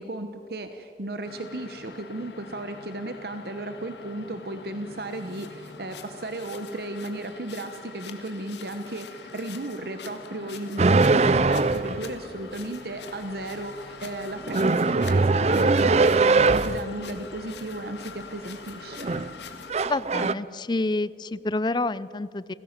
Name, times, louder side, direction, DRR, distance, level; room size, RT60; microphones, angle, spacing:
voice 1, 0.0-19.1, right 1 dB, 60° right, 8 dB, 1.1 m, -35 dB
sound 1, 1.2-19.7, left 4 dB, 80° left, 1.8 m, -44 dB
sound 2, 10.8-12.1 14.5-16.8 18.9-19.3 19.7-20.3, right 3 dB, 40° right, 0.5 m, -21 dB
voice 2, 19.8-22.5, left 2 dB, 25° left, 18 dB, 0.5 m, -28 dB
29.5 x 16.0 x 7.4 m, 2.6 s
head